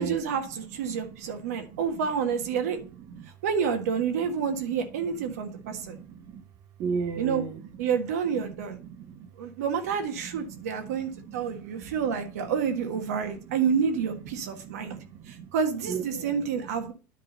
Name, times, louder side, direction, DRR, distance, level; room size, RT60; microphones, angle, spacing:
voice 1, 0.0-2.8 3.4-6.0 7.2-7.4 7.8-8.8 9.4-15.0 15.3-16.9, right 6 dB, 90° right, 1.5 m, -29 dB
voice 2, 0.9-1.8 3.1-3.3 5.1-6.4 6.8-7.6 8.6-9.3 10.5-12.5 13.4-13.6 14.4-15.5 15.8-16.5, right 6 dB, 45° right, 0.9 m, -38 dB
10.0 x 3.8 x 5.4 m
supercardioid pair, 140°, 8 cm